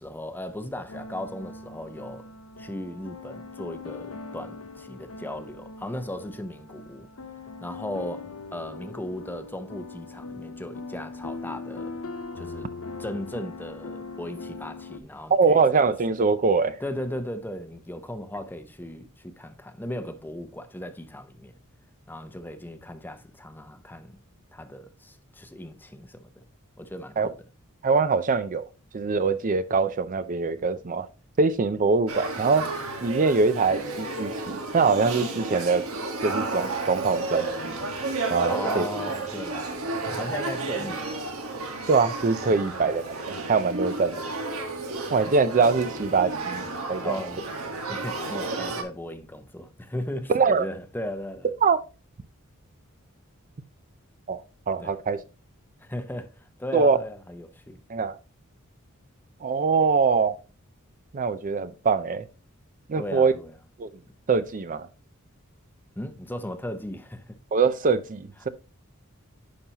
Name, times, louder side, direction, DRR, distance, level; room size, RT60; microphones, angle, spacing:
voice 1, 0.0-2.3 2.6-7.1 7.6-12.0 12.3-12.7 13.0-15.6 16.8-21.6 22.1-24.2 24.5-26.4 26.8-27.3 38.5-41.3 47.0-47.4 47.9-51.5 54.8-55.0 55.8-57.8 63.0-63.5 66.0-67.4, left 1 dB, 10° left, 0.7 m, -37 dB
sound 1, 0.9-15.0, left 3 dB, 70° left, 0.7 m, -40 dB
voice 2, 15.3-16.8 27.2-27.3 27.8-28.6 28.9-31.1 31.4-32.7 33.0-35.8 36.2-37.8 38.3-38.9 41.9-44.3 45.1-47.1 50.3-50.7 51.6-51.8 54.3-54.4 54.7-55.2 56.7-57.0 57.9-58.2 59.4-60.4 61.1-62.2 62.9-63.3 63.8-63.9 64.3-64.9 67.5-68.5, right 4 dB, 40° right, 0.5 m, -23 dB
Male speech man speaking / Child speech kid speaking / Conversation, 32.1-48.8, right 3 dB, 85° right, 1.5 m, -32 dB
10.0 x 5.6 x 2.9 m
head